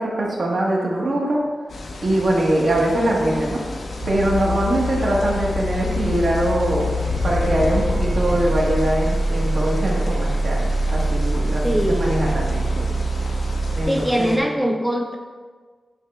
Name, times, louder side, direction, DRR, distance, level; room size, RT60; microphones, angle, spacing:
voice 1, 0.0-1.4 2.0-3.6 4.1-7.0 7.2-12.9 13.7-14.6, right 1 dB, 65° right, -4 dB, 1.5 m, -22 dB
sound 1, 1.7-14.4, left 2 dB, 75° left, 0.6 m, -32 dB
sound 2, 4.0-13.8, right 1 dB, 85° right, 1.0 m, -24 dB
voice 2, 11.6-12.1 13.9-15.1, equal, 5° right, 0 dB, 0.6 m, -22 dB
9.4 x 3.3 x 3.5 m, 1.5 s
wide cardioid pair, 95°, 0 cm